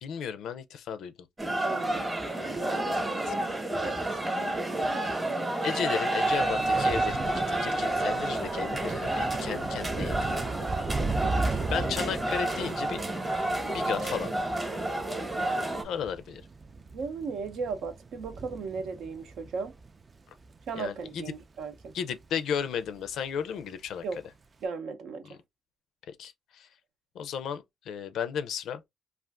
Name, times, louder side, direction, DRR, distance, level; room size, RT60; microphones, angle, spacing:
voice 1, 0.0-1.1 3.0-3.3 5.6-10.3 11.7-13.0 13.7-14.3 15.8-16.4 20.8-21.2 21.9-24.0 26.1-26.7 27.1-28.8, left 7 dB, 75° left, 0.4 m, -34 dB
sound 1, 1.4-15.8, right 1 dB, 20° right, 0.9 m, -30 dB
voice 2, 1.6-2.1 2.6-3.5 3.8-4.2 11.2-11.7 16.9-19.7 20.7-21.9 24.0-24.2 24.6-25.3, right 4 dB, 75° right, 0.7 m, -36 dB
Thunder / Rain, 5.8-22.4 22.7-23.2 23.4-23.6, right 3 dB, 35° right, 0.4 m, -37 dB
2.4 x 2.4 x 3.4 m
cardioid pair, 90°, 0 cm